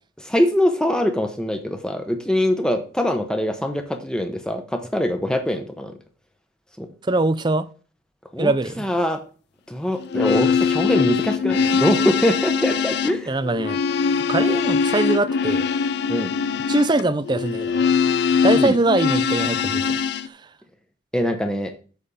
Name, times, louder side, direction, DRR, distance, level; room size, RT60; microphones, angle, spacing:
voice 1, 0.2-5.9 6.8-6.9 8.3-9.2 9.7-13.3 16.1-16.3 18.5-18.7 21.1-21.7, left 1 dB, 5° left, 0.8 m, -23 dB
voice 2, 7.0-7.7 8.4-8.9 13.3-13.8 14.3-15.7 16.7-17.9 18.4-20.4, right 2 dB, 20° right, 0.4 m, -22 dB
sound 1, 10.0-20.3, left 6 dB, 55° left, 0.4 m, -22 dB
8.5 x 3.6 x 6.9 m
head